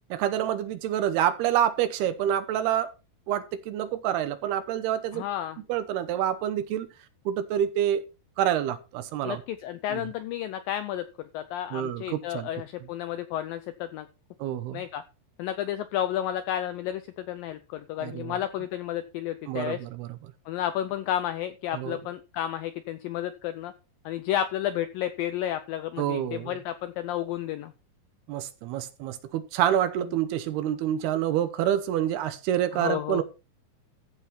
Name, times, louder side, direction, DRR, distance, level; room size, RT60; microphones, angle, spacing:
voice 1, 0.1-2.9 3.3-5.2 5.7-6.9 7.3-8.0 8.4-9.4 9.9-10.0 11.7-12.5 14.4-14.8 18.0-18.4 19.5-20.1 21.7-22.0 26.0-26.6 28.3-33.2, right 10 dB, 80° right, 2.8 m, -27 dB
voice 2, 5.1-5.6 9.3-14.1 14.7-15.0 15.4-19.8 20.5-23.7 24.1-27.7 32.7-33.2, left 11 dB, 90° left, 2.0 m, -31 dB
14.5 x 5.8 x 4.4 m
omnidirectional pair, 4.8 m